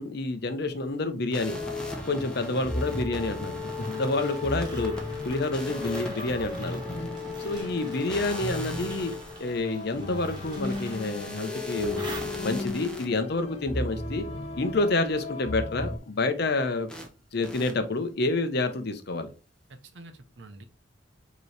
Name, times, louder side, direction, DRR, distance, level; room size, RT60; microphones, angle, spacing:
voice 1, 0.0-1.6 2.1-4.9 5.2-6.8 7.4-9.1 9.4-12.1 12.4-14.2 14.5-16.9 17.3-19.3, left 2 dB, 55° left, 9 dB, 0.7 m, -28 dB
sound 1, 1.3-13.1 16.9-17.1 17.4-17.7, left 2 dB, 5° left, 0.8 m, -39 dB
sound 2, 1.5-16.0, left 2 dB, 35° left, 1.1 m, -35 dB
sound 3, 1.8-12.8, right 2 dB, 25° right, 1.4 m, -46 dB
voice 2, 19.7-20.6, right 2 dB, 65° right, 8 dB, 0.7 m, -47 dB
5.2 x 3.0 x 3.3 m, 0.33 s
head